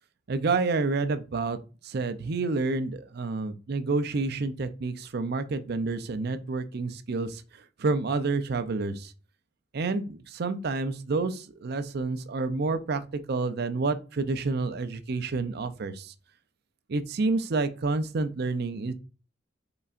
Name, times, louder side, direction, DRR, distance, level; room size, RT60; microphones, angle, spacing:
voice 1, 0.3-1.6 1.8-7.4 7.8-9.1 9.7-16.1 16.9-18.9, right 3 dB, 55° right, 0.5 m, -29 dB
5.5 x 3.9 x 2.5 m
head